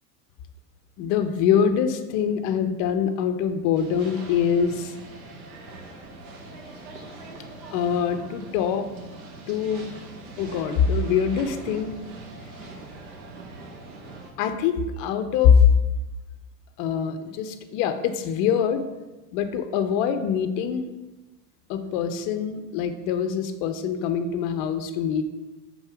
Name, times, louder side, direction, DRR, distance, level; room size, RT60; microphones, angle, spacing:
voice 1, 1.0-4.9 7.7-8.9 9.5-9.9 10.4-11.9 14.4-15.7 16.8-18.8 19.3-20.9 21.7-25.2, left 7 dB, 40° left, 9 dB, 0.6 m, -23 dB
sound 1, 3.7-14.3, right 2 dB, 65° right, 1.3 m, -42 dB
5.3 x 3.9 x 4.7 m, 1.1 s
hypercardioid pair, 105°, 48 cm